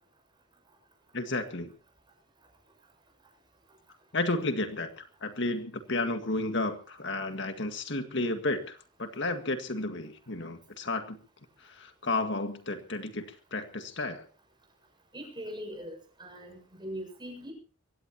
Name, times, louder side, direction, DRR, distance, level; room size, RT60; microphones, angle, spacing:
voice 1, 1.1-1.7 4.1-11.2 11.6-14.3, left 2 dB, 60° left, 7 dB, 1.9 m, -32 dB
voice 2, 15.1-17.5, equal, 20° right, 3 dB, 7.3 m, -41 dB
23.5 x 17.0 x 3.0 m, 0.37 s
head